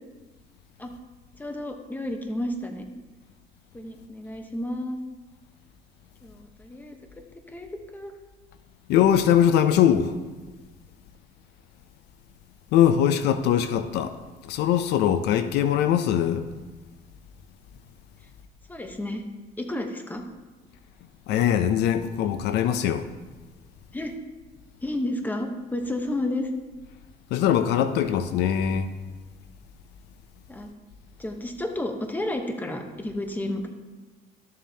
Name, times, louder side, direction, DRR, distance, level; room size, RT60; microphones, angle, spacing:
voice 1, 1.4-2.9 3.7-5.0 6.2-7.0 7.5-8.1 18.7-19.2 19.6-20.2 23.9-24.1 24.8-26.5 30.5-30.7 31.2-33.7, left 1 dB, 10° left, 1.0 m, -31 dB
voice 2, 8.9-10.1 12.7-14.2 14.4-16.5 21.3-23.1 27.3-28.9, left 9 dB, 85° left, 0.6 m, -21 dB
13.0 x 7.4 x 2.8 m
cardioid pair, 110°, 17 cm